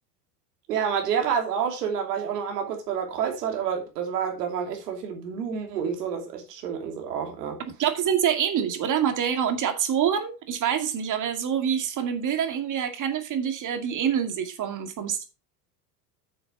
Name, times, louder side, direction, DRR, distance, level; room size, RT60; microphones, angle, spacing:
voice 1, 0.7-7.6, right 7 dB, 75° right, 2.9 m, -29 dB
voice 2, 7.8-15.3, right 8 dB, 40° right, 2.2 m, -26 dB
9.7 x 6.9 x 3.8 m
hypercardioid pair, 85°, 48 cm